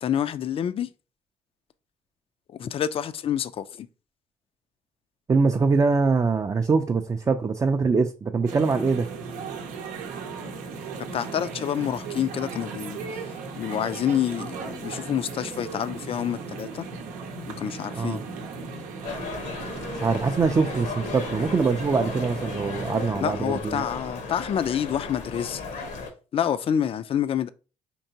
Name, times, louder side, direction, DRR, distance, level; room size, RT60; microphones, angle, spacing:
voice 1, 0.0-0.9 2.6-3.9 11.1-13.0 13.6-16.9 17.6-18.2 23.2-25.8 26.3-27.5, left 9 dB, 45° left, 0.4 m, -27 dB
voice 2, 5.3-9.1 18.0-18.2 19.9-23.8, right 4 dB, 25° right, 0.4 m, -23 dB
sound 1, 8.5-23.1, right 4 dB, 90° right, 0.7 m, -36 dB
sound 2, 19.0-26.1, left 4 dB, 80° left, 1.0 m, -36 dB
4.5 x 2.9 x 2.7 m
cardioid pair, 85°, 13 cm